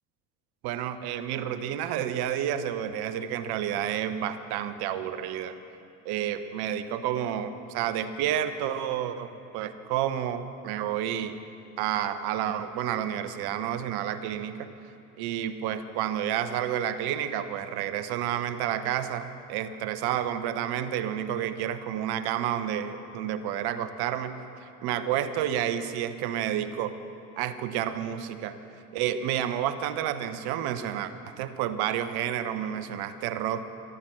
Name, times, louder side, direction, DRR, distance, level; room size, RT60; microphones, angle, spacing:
voice 1, 0.6-5.5 6.0-11.4 11.8-14.7 15.2-24.4 24.8-27.0 27.4-28.6 28.9-33.6, right 10 dB, 55° right, 11 dB, 1.1 m, -30 dB
13.5 x 12.5 x 6.3 m, 3.0 s
hypercardioid pair, 70°, 45 cm